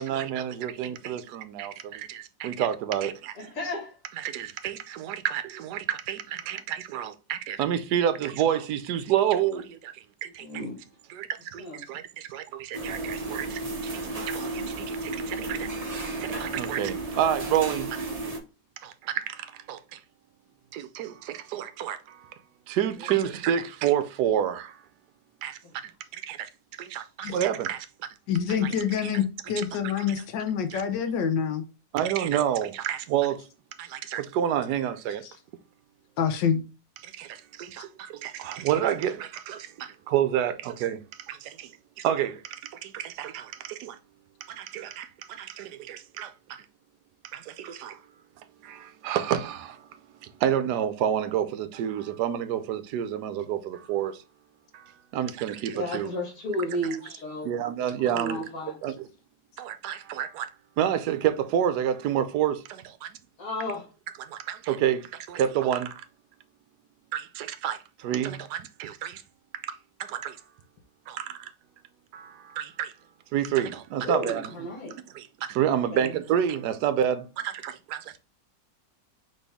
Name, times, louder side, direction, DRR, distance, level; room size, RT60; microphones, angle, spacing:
voice 1, 0.0-3.4 4.2-10.5 11.1-15.7 16.2-18.1 18.8-20.0 20.7-22.3 22.7-24.8 25.4-26.5 26.8-27.9 28.6-28.7 30.7-30.8 31.9-33.5 33.8-35.2 37.0-41.0 41.3-41.7 42.0-44.0 44.5-46.6 47.3-48.0 48.6-49.9 50.2-54.2 54.7-56.1 57.4-58.4 58.8-59.1 59.6-60.5 60.8-63.2 64.2-66.0 67.1-69.2 69.6-70.4 71.1-71.5 72.1-72.9 73.3-74.5 75.1-78.2, right 10 dB, 70° right, 1.1 m, -29 dB
voice 2, 3.4-4.0 10.4-10.8 11.6-11.8 23.0-23.1 25.6-25.7 55.6-57.5 58.0-58.7 63.4-63.9 74.0-75.0 75.7-76.2, left 1 dB, 50° left, 1.8 m, -33 dB
sound 1, 12.7-18.4, right 2 dB, 55° right, 0.4 m, -33 dB
voice 3, 28.3-31.6 36.2-36.6, left 7 dB, 85° left, 1.4 m, -26 dB
4.3 x 3.5 x 3.4 m
omnidirectional pair, 1.9 m